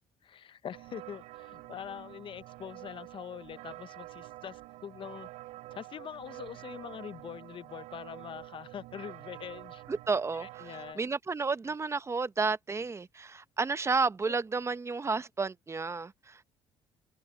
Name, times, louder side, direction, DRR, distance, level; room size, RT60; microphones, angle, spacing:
voice 1, 0.2-5.3 5.7-9.8 10.3-11.0 14.2-14.4, left 9 dB, 45° left, 0.6 m, -44 dB
sound 1, 0.7-10.9, right 18 dB, 90° right, 3.6 m, -48 dB
voice 2, 9.9-10.5 10.9-16.4, right 4 dB, 25° right, 0.8 m, -31 dB
open air
cardioid pair, 95°, 12 cm